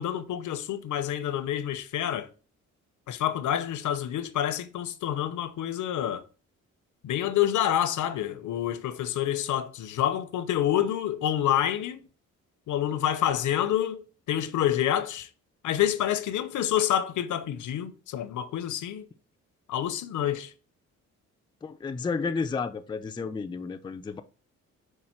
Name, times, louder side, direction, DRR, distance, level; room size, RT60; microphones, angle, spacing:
voice 1, 0.0-2.3 3.1-6.2 7.0-12.1 12.7-15.3 15.6-19.1 19.7-20.5, left 11 dB, 65° left, 0.7 m, -28 dB
voice 2, 21.6-24.2, left 4 dB, 15° left, 0.4 m, -32 dB
5.5 x 2.1 x 4.3 m
supercardioid pair, 65°, 32 cm